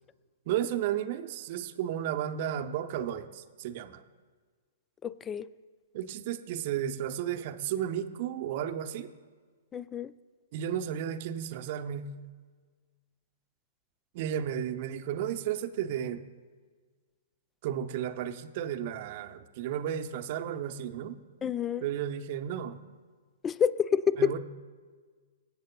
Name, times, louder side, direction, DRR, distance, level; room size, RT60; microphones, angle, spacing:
voice 1, 0.5-4.0 5.9-9.1 10.5-12.1 14.1-16.2 17.6-21.2 21.8-22.8 24.2-24.4, right 10 dB, 45° right, 8 dB, 0.7 m, -33 dB
voice 2, 5.0-5.5 9.7-10.1 21.4-21.9 23.4-24.4, left 7 dB, 20° left, 18 dB, 0.4 m, -28 dB
24.5 x 8.1 x 2.3 m, 1.5 s
figure-of-eight pair, 110°, 0 cm